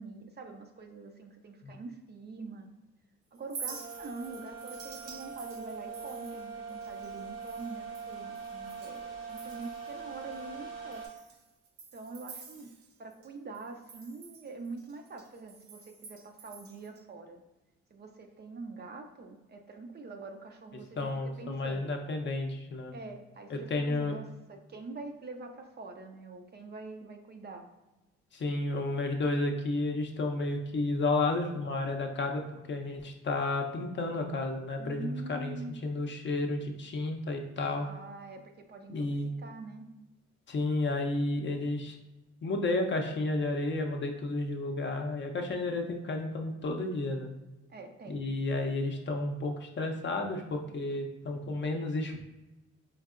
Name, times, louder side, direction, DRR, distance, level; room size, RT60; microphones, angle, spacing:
voice 1, 0.0-2.7 3.3-11.1 11.9-12.7 13.0-17.4 17.9-21.9 22.9-27.7 34.8-35.8 37.7-39.1 39.4-39.9 47.7-48.3, right 3 dB, 35° right, 4 dB, 0.4 m, -45 dB
Chink clink, 3.4-9.0 9.3-9.9 10.3-10.4 10.9-13.3 13.5-17.0, right 5 dB, 70° right, 0.7 m, -48 dB
sound 1, 3.6-11.1, right 5 dB, 85° right, 1.4 m, -42 dB
voice 2, 21.0-22.9 23.5-24.1 28.3-32.4 32.7-35.6 35.8-37.9 38.9-39.3 40.5-41.9 42.4-47.3 48.1-52.2, left 2 dB, 40° left, 3 dB, 0.5 m, -32 dB
4.5 x 2.6 x 2.4 m, 1.0 s
cardioid pair, 90°, 30 cm